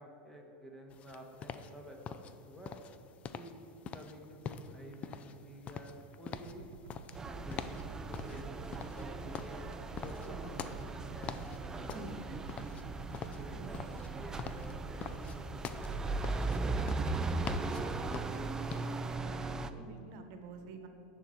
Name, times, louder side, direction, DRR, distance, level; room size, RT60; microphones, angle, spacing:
voice 1, 0.0-2.8 3.3-3.6 3.9-6.7 7.3-9.7 10.0-12.8 13.2-18.7, equal, 5° left, 1 dB, 1.5 m, -52 dB
sound 1, 0.9-19.1, left 7 dB, 35° left, 0.5 m, -45 dB
sound 2, 6.3-18.3, right 8 dB, 80° right, 0.5 m, -52 dB
sound 3, 7.2-19.7, right 3 dB, 15° right, 0.5 m, -38 dB
voice 2, 19.1-20.9, right 4 dB, 60° right, 6 dB, 1.1 m, -48 dB
11.5 x 4.4 x 7.9 m, 3.0 s
supercardioid pair, 115°, 4 cm